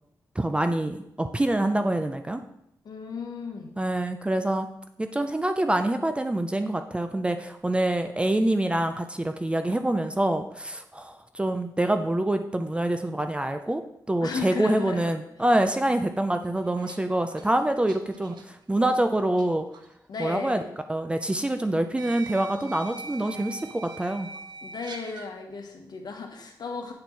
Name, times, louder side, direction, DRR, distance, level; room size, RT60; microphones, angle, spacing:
voice 1, 0.4-2.4 3.8-4.7 5.0-13.8 14.1-19.7 20.2-20.6 20.9-24.3, right 1 dB, 15° right, 7 dB, 0.4 m, -26 dB
voice 2, 2.8-3.7 14.2-15.1 20.1-20.7 24.6-26.9, left 4 dB, 65° left, 3 dB, 1.2 m, -35 dB
sound 1, 16.4-19.5 19.7-19.9 21.0-21.1 22.0-25.3, right 4 dB, 85° right, 0.7 m, -43 dB
8.6 x 4.2 x 4.6 m, 0.78 s
wide cardioid pair, 110°, 8 cm